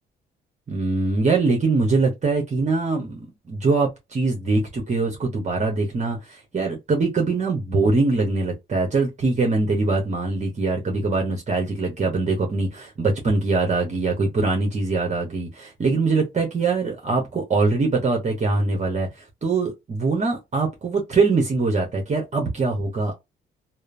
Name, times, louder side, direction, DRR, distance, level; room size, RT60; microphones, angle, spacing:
voice 1, 0.7-23.1, right 3 dB, 35° right, 1.0 m, -23 dB
2.9 x 2.0 x 2.5 m
cardioid pair, 90°, 20 cm